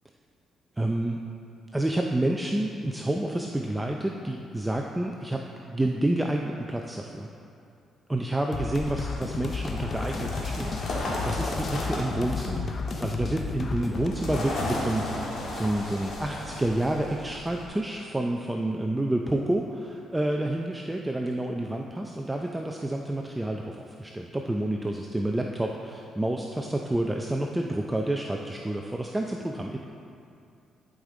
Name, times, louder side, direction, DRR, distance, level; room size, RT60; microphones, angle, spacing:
voice 1, 0.8-1.2 1.7-7.3 8.1-12.7 13.0-29.8, right 1 dB, 10° right, 1 dB, 0.5 m, -29 dB
sound 1, 8.5-14.1, left 5 dB, 40° left, 0.5 m, -33 dB
sound 2, 8.8-17.7, left 1 dB, 60° left, 1.7 m, -35 dB
11.5 x 5.1 x 3.8 m, 2.5 s
cardioid pair, 90°, 0 cm